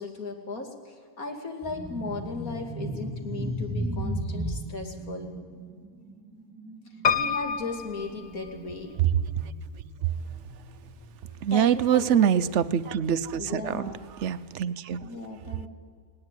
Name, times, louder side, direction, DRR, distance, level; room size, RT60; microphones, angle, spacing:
voice 1, 0.0-5.3 7.1-9.0 11.5-12.5 13.4-14.0 15.0-15.7, left 3 dB, 70° left, 3 dB, 2.9 m, -36 dB
sound 1, 1.6-11.6 11.9-12.1 12.9-13.9, right 1 dB, 5° right, 2.6 m, -36 dB
Piano, 7.0-9.0 9.6-10.4 10.7-10.8 11.0-11.1, left 6 dB, 45° left, 0.5 m, -29 dB
voice 2, 11.4-13.8 14.2-15.0, right 9 dB, 60° right, 15 dB, 0.9 m, -24 dB
19.0 x 19.0 x 9.1 m, 2.1 s
omnidirectional pair, 1.5 m